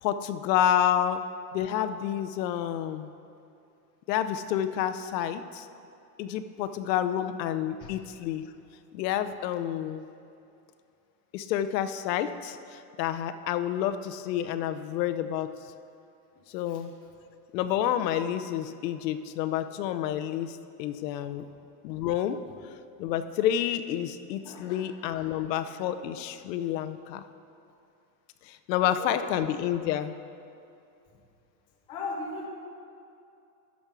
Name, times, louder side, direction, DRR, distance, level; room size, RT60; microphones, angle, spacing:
voice 1, 0.0-1.2 1.5-3.1 4.1-5.7 6.2-8.4 8.9-10.0 11.3-15.5 16.5-16.9 17.5-21.4 21.8-22.4 23.0-27.2 28.4-30.2, left 10 dB, 85° left, 11 dB, 0.7 m, -29 dB
voice 2, 24.4-25.4 28.8-29.3 31.9-32.5, left 3 dB, 10° left, -1 dB, 0.4 m, -39 dB
12.5 x 5.3 x 6.0 m, 2.7 s
supercardioid pair, 170°, 49 cm